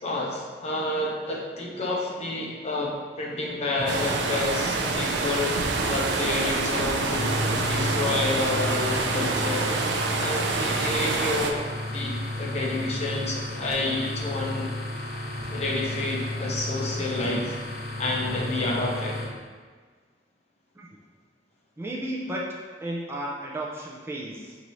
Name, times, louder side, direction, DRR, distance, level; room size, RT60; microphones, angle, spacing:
voice 1, 0.0-5.6 5.9-11.6 11.9-14.7 15.5-17.6 18.0-19.2, left 2 dB, 40° left, -3 dB, 0.7 m, -29 dB
sound 1, 3.7-19.3, equal, 60° right, 1.2 m, -44 dB
sound 2, 3.9-11.5, right 3 dB, 80° right, 0.4 m, -27 dB
sound 3, 7.0-19.2, left 1 dB, 60° left, 1.0 m, -33 dB
voice 2, 21.8-22.5 22.8-24.6, right 1 dB, 15° right, -3 dB, 0.4 m, -33 dB
5.8 x 2.7 x 3.0 m, 1.5 s
head